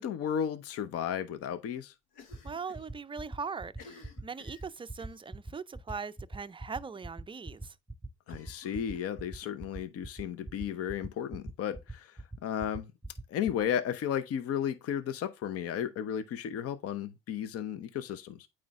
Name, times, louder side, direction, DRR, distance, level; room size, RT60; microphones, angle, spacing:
voice 1, 0.0-1.9 8.3-12.9 13.3-18.5, left 9 dB, 55° left, 0.8 m, -34 dB
Cough, 2.1-2.9 3.2-3.3 3.7-5.2 5.9-6.2 6.5-6.6 6.9-7.0 8.3-9.5, left 4 dB, 80° left, 1.1 m, -55 dB
sound 1, 2.3-13.6, right 2 dB, 5° left, 1.2 m, -41 dB
voice 2, 2.4-7.8, right 5 dB, 20° right, 0.4 m, -40 dB
8.6 x 3.2 x 3.5 m
supercardioid pair, 70°, 29 cm